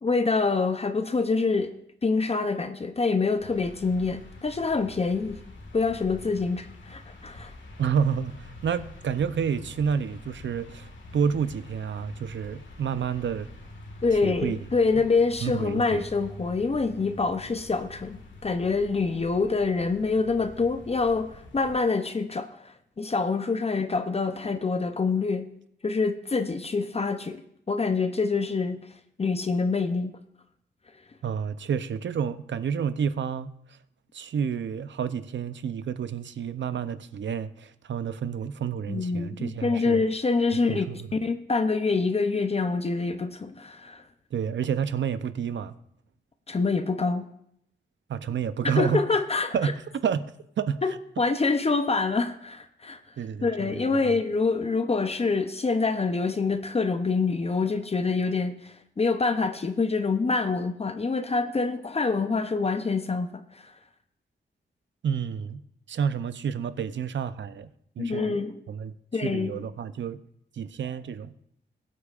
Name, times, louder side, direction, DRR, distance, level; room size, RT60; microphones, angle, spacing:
voice 1, 0.0-1.7 2.0-5.4 5.7-7.5 14.0-25.5 25.8-27.4 27.7-28.8 29.2-30.2 38.9-40.8 41.2-44.0 46.5-47.3 48.8-49.7 50.8-50.9 51.2-53.0 53.4-63.6 68.0-68.6 69.1-69.6, left 4 dB, 35° left, 0.6 m, -26 dB
sound 1, 3.4-21.8, left 2 dB, 75° left, 1.8 m, -46 dB
voice 2, 7.8-13.5 14.2-14.6 15.4-16.0 31.2-33.5 34.1-40.0 40.7-41.1 44.3-45.8 48.1-49.0 49.5-49.7 50.0-50.2 50.6-51.0 53.2-54.1 65.0-65.6 65.9-67.7 68.0-68.4 68.7-70.2 70.5-71.3, right 7 dB, 75° right, 0.6 m, -29 dB
21.0 x 8.4 x 2.5 m
wide cardioid pair, 120°, 19 cm